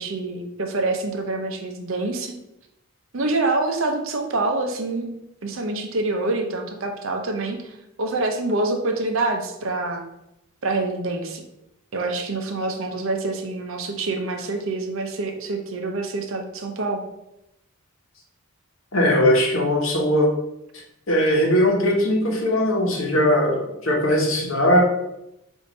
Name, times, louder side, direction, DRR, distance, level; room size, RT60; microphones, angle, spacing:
voice 1, 0.0-2.3 3.1-5.1 5.4-10.1 10.6-11.4 11.9-17.0, right 2 dB, 60° right, 4 dB, 0.6 m, -26 dB
voice 2, 18.9-20.3 21.1-24.8, equal, 65° left, 0 dB, 1.0 m, -19 dB
5.0 x 2.6 x 3.9 m, 0.86 s
head